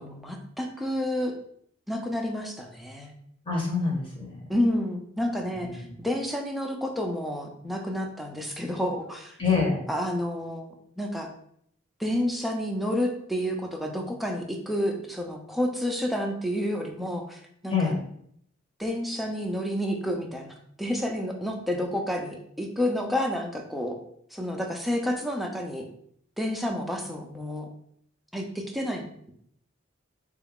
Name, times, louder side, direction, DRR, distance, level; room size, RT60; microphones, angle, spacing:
voice 1, 0.0-1.3 1.9-3.1 4.5-9.4 9.9-10.7 11.0-11.3 12.0-17.9 18.8-24.0 24.3-25.9 26.4-27.7 28.3-29.3, left 1 dB, ahead, 2 dB, 0.4 m, -30 dB
voice 2, 3.5-4.4 5.6-5.9 9.4-9.8 17.7-18.0, left 4 dB, 25° left, -1 dB, 0.9 m, -26 dB
3.7 x 2.3 x 3.5 m, 0.68 s
head